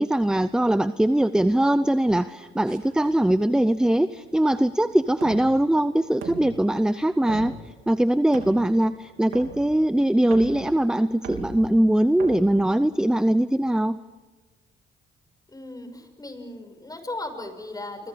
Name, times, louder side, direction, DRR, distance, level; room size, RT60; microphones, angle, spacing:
voice 1, 0.0-7.5 7.9-14.0, right 1 dB, 5° right, 13 dB, 0.6 m, -21 dB
sound 1, 2.7-13.3, right 6 dB, 85° right, 3.5 m, -42 dB
voice 2, 15.5-18.1, left 2 dB, 20° left, 7 dB, 6.0 m, -37 dB
29.5 x 24.5 x 5.1 m, 1.4 s
cardioid pair, 90°, 20 cm